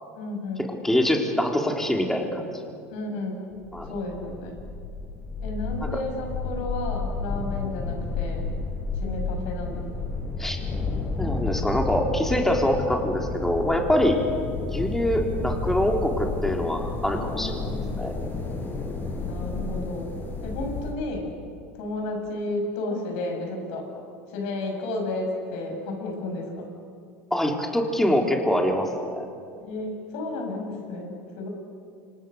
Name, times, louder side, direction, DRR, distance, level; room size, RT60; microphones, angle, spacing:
voice 1, 0.1-0.7 2.9-3.4 3.8-4.6 5.4-8.5 8.9-10.0 17.1-18.0 19.2-20.1 20.4-21.3 21.8-23.9 24.3-26.7 29.6-31.5, left 2 dB, 70° left, 2 dB, 7.8 m, -32 dB
voice 2, 0.8-2.5 3.7-3.9 5.9-6.0 10.4-10.6 11.2-14.2 14.7-17.7 18.0-18.1 27.3-29.3, equal, 5° left, 1 dB, 3.8 m, -24 dB
sound 1, 3.5-20.9, left 3 dB, 30° left, 6.1 m, -31 dB
29.5 x 26.5 x 6.7 m, 2.4 s
hypercardioid pair, 95°, 7 cm